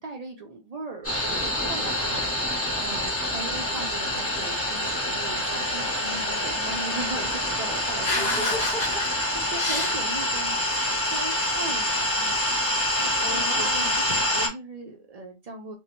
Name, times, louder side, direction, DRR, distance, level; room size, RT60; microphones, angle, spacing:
voice 1, 0.0-2.3 3.3-8.6 9.5-10.6 11.0-12.3 12.7-15.7, right 3 dB, 65° right, 0.3 m, -38 dB
sound 1, 1.0-14.5, left 1 dB, 20° left, 0.4 m, -26 dB
voice 2, 2.8-3.1 7.7-10.0 12.9-13.9, left 2 dB, 40° left, 0.9 m, -31 dB
2.6 x 2.0 x 2.9 m
omnidirectional pair, 1.3 m